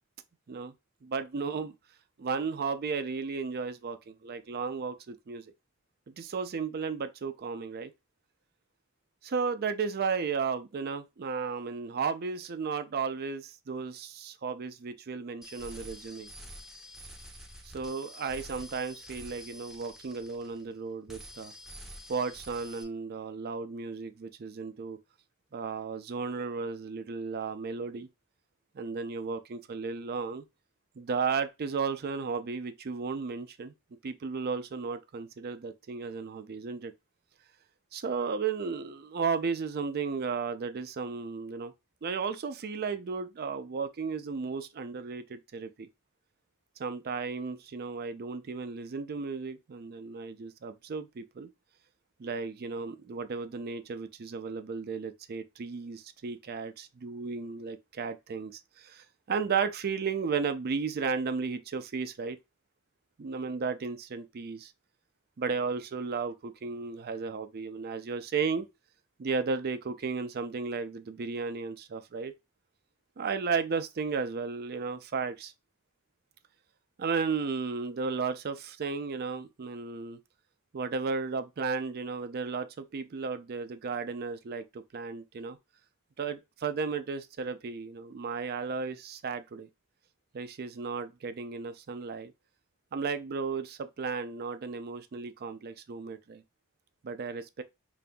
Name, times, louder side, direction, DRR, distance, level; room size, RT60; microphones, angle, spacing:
voice 1, 1.0-1.7 2.2-5.4 6.1-7.9 9.2-16.3 17.6-21.5 22.1-25.0 25.5-28.1 28.7-30.4 31.0-33.7 34.0-36.9 37.9-41.7 42.0-45.9 46.8-51.5 52.2-62.4 63.2-64.7 65.4-68.7 69.2-72.3 73.2-75.5 77.0-80.2 80.7-85.6 86.2-89.7 90.3-92.3 92.9-96.4 97.0-97.6, right 5 dB, 45° right, 0.4 m, -34 dB
sound 1, 15.4-20.8 21.1-22.8, equal, ahead, 0.6 m, -48 dB
5.2 x 2.6 x 2.2 m
head